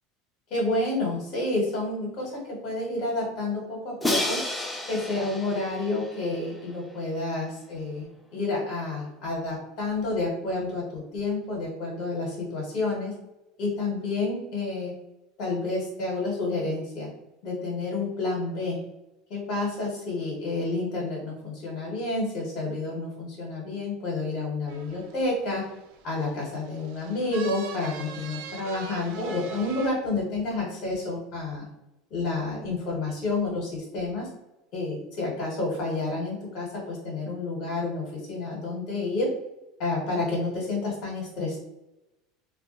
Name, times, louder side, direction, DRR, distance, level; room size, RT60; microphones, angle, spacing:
voice 1, 0.5-4.4 4.9-13.1 13.6-14.9 15.4-17.1 17.4-18.8 19.3-25.6 26.0-31.7 32.1-34.3 34.7-39.3 39.8-41.6, left 2 dB, 55° left, -3 dB, 0.9 m, -29 dB
Crash cymbal, 4.0-7.0, left 1 dB, 10° left, 0.4 m, -31 dB
sound 1, 24.7-29.9, right 6 dB, 70° right, 0.3 m, -43 dB
2.2 x 2.0 x 2.8 m, 0.95 s
supercardioid pair, 110°, 0 cm